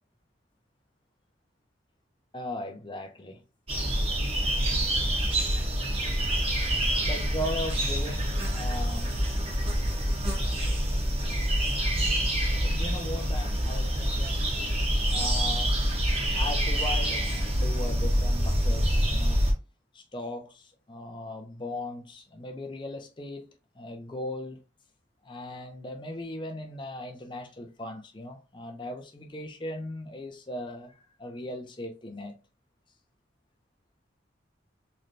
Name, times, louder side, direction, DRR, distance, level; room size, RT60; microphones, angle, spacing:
voice 1, 2.3-3.4 6.5-6.6 7.0-9.1 12.6-14.5 15.1-15.8 16.3-19.4 19.9-24.6 25.2-32.4, left 1 dB, 25° left, 0.6 m, -38 dB
sound 1, 3.7-19.5, equal, 30° right, 0.9 m, -26 dB
3.2 x 3.1 x 2.6 m
head